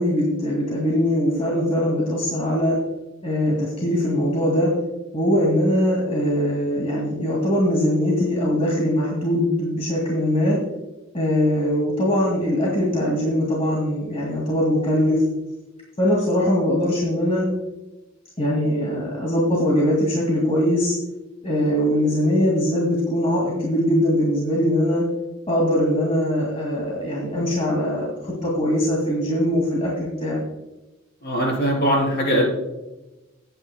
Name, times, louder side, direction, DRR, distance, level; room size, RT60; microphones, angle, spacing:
voice 1, 0.0-2.8 3.2-4.7 5.1-10.6 11.1-15.2 16.0-17.5 18.4-20.9 21.4-25.0 25.5-28.1 28.4-30.4, equal, 30° left, -3 dB, 2.2 m, -21 dB
voice 2, 31.2-32.5, equal, 55° left, 0 dB, 3.7 m, -21 dB
18.0 x 9.1 x 2.2 m, 1.0 s
head